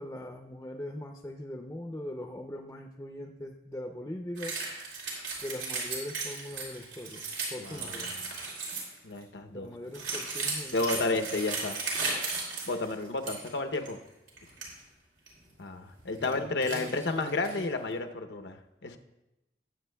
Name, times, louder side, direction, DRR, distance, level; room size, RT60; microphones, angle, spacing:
voice 1, 0.0-4.5 5.4-8.2 9.5-11.2 16.2-16.9 17.5-17.6, left 1 dB, 15° left, 3 dB, 0.5 m, -41 dB
sound 1, 4.4-9.0 9.9-13.5 13.7-13.9 14.3-14.7 15.3-15.4 15.9-16.3 16.6-17.7, right 4 dB, 90° right, 2.9 m, -36 dB
voice 2, 7.6-8.3 9.0-9.7 10.7-11.8 12.6-14.0 15.6-19.0, left 3 dB, 85° left, 6 dB, 0.7 m, -32 dB
19.0 x 7.7 x 2.2 m, 0.97 s
head